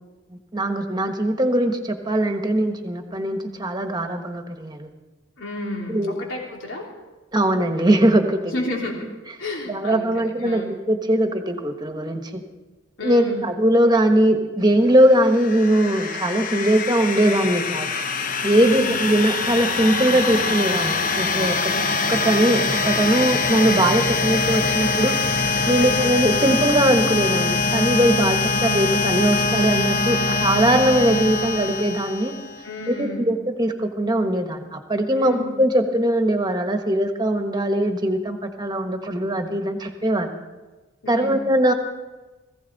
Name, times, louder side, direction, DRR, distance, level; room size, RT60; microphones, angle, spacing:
voice 1, 0.5-4.9 5.9-6.1 7.3-8.5 9.7-10.6 10.9-12.4 13.0-17.9 18.4-21.5 22.1-25.1 25.7-32.3 33.0-40.3 41.1-41.7, right 1 dB, 20° right, 5 dB, 1.3 m, -20 dB
voice 2, 5.4-6.8 8.4-9.0 9.4-10.8 13.0-13.5 18.5-19.0 21.5-21.9 25.7-25.9 28.3-28.4 32.6-33.3 35.1-35.4 41.0-41.5, left 2 dB, 80° left, -1 dB, 3.2 m, -32 dB
sound 1, 15.1-32.7, left 3 dB, 45° left, 0.7 m, -23 dB
19.0 x 15.5 x 4.1 m, 1.2 s
head